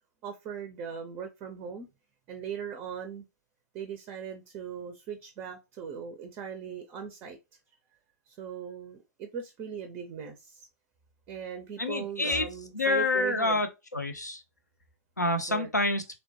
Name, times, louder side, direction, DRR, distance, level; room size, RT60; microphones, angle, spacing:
voice 1, 0.2-1.9 2.3-3.2 3.7-7.4 8.3-10.7 11.3-13.6 15.5-15.7, right 7 dB, 30° right, 0.4 m, -39 dB
voice 2, 11.8-12.5 12.7-13.7 13.9-14.4 15.2-16.0, left 2 dB, 85° left, 0.6 m, -27 dB
3.0 x 2.1 x 2.7 m
figure-of-eight pair, 100°, 9 cm